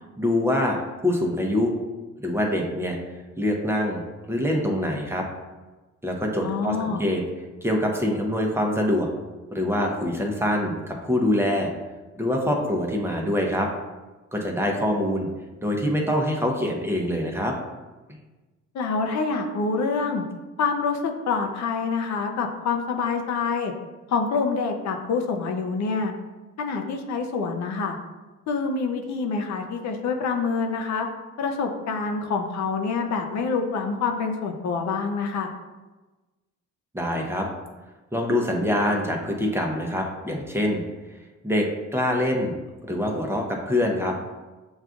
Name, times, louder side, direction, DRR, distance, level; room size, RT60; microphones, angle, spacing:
voice 1, 0.2-0.8 1.0-1.7 2.2-3.0 3.4-4.0 4.3-5.3 6.0-7.2 7.6-9.1 9.5-11.7 12.2-13.7 14.3-15.3 15.6-17.5 36.9-37.5 38.1-40.8 41.4-42.5 42.8-44.1, left 1 dB, 10° right, 0 dB, 0.6 m, -24 dB
voice 2, 6.4-7.0 18.7-20.2 20.6-23.7 24.1-26.1 26.6-28.0 28.5-31.1 31.4-35.5, left 4 dB, 65° left, 4 dB, 0.6 m, -26 dB
7.0 x 2.3 x 2.5 m, 1.2 s
cardioid pair, 90°, 30 cm